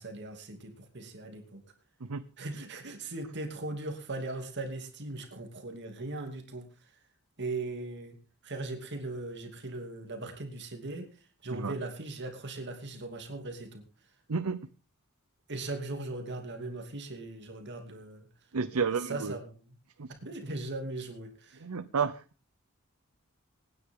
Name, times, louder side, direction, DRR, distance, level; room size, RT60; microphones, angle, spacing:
voice 1, 0.0-1.6 2.4-6.7 7.4-8.2 8.4-11.1 11.4-13.8 15.5-18.3 18.7-19.7 20.2-21.6, right 2 dB, 55° right, 4 dB, 2.7 m, -39 dB
voice 2, 14.3-14.7 18.5-19.4 20.0-20.1 21.6-22.2, right 5 dB, 85° right, 12 dB, 0.7 m, -31 dB
25.0 x 10.0 x 3.8 m, 0.34 s
head